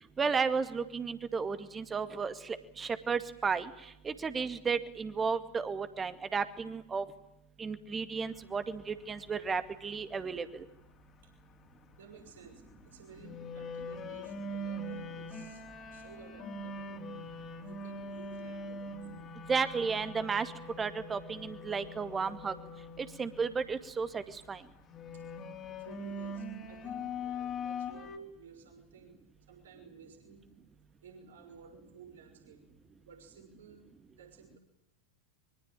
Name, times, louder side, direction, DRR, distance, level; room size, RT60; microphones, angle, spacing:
voice 1, 0.2-7.1 7.6-10.7 19.5-20.5 20.8-22.5 23.0-24.6, right 5 dB, 20° right, 11 dB, 2.2 m, -33 dB
sound 1, 8.3-28.2, left 2 dB, 25° left, 3.6 m, -43 dB
voice 2, 12.0-15.7 15.9-17.0 17.6-19.0 25.1-25.2 25.7-29.1 29.4-30.5 31.0-32.6 33.0-34.6, right 6 dB, 60° right, 5 dB, 6.0 m, -55 dB
25.0 x 24.0 x 9.1 m, 0.83 s
figure-of-eight pair, 90°, 0 cm